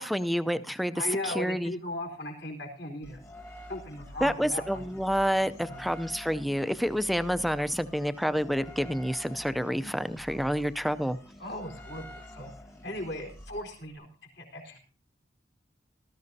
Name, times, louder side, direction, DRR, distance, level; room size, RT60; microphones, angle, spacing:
voice 1, 0.0-1.7 4.2-11.2, equal, ahead, 12 dB, 0.5 m, -28 dB
voice 2, 0.9-3.2 3.7-4.9 5.7-5.8 11.4-14.1 14.3-14.8, left 1 dB, 65° left, 1 dB, 4.2 m, -37 dB
sound 1, 3.0-13.9, equal, 15° left, 1.3 m, -48 dB
18.5 x 13.0 x 2.8 m, 0.41 s
head